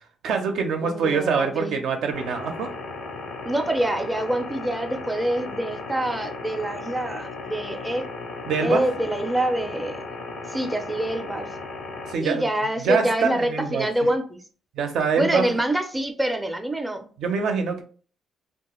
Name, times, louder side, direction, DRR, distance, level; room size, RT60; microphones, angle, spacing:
voice 1, 0.2-2.7 8.5-8.8 12.1-12.5 12.8-13.9 14.8-15.5 17.2-17.8, right 5 dB, 80° right, 0.5 m, -24 dB
voice 2, 0.9-1.7 3.4-8.0 8.6-10.0 10.5-11.5 12.2-14.4 15.2-17.1, right 1 dB, 10° right, 0.4 m, -26 dB
sound 1, 2.1-12.1, left 3 dB, 60° left, 0.5 m, -36 dB
2.4 x 2.2 x 2.9 m
cardioid pair, 90°, 0 cm